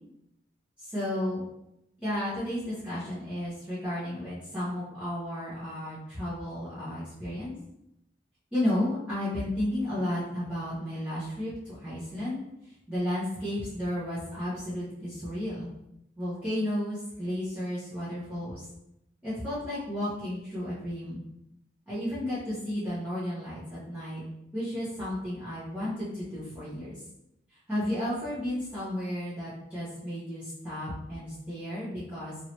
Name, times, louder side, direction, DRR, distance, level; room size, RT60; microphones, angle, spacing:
voice 1, 0.8-1.4 2.0-7.5 8.5-15.7 16.2-18.7 19.2-21.2 21.9-24.2 24.5-27.0 27.5-32.3, left 1 dB, 5° right, -13 dB, 1.0 m, -33 dB
3.0 x 2.8 x 3.0 m, 0.82 s
head